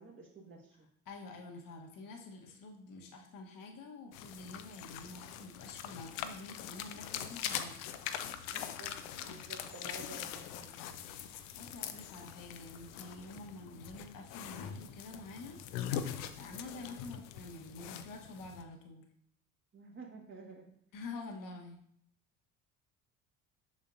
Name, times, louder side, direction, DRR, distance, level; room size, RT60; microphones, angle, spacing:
voice 1, 0.0-0.9 8.4-10.7 16.8-17.0 19.7-20.6, right 3 dB, 30° right, -2 dB, 1.6 m, -51 dB
voice 2, 1.0-7.8 11.2-15.6 16.4-19.0 20.9-21.8, left 3 dB, 50° left, 3 dB, 1.3 m, -48 dB
sound 1, 4.1-18.6, left 9 dB, 70° left, 0.7 m, -43 dB
7.3 x 6.3 x 2.6 m, 0.69 s
hypercardioid pair, 55°, 42 cm